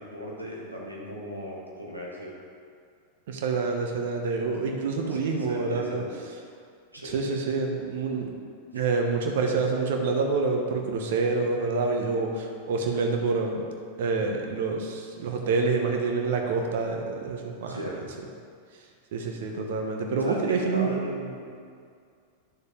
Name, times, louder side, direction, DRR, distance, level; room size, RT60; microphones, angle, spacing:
voice 1, 0.0-2.4 5.0-6.2 6.9-7.2 8.7-8.9 17.7-18.1 20.2-21.5, equal, 85° right, -4 dB, 1.7 m, -37 dB
voice 2, 3.3-6.0 7.0-8.3 8.7-13.6 14.0-17.8 19.1-20.9, right 4 dB, 55° right, 2 dB, 1.1 m, -27 dB
10.5 x 6.6 x 3.4 m, 2.2 s
figure-of-eight pair, 90°, 0 cm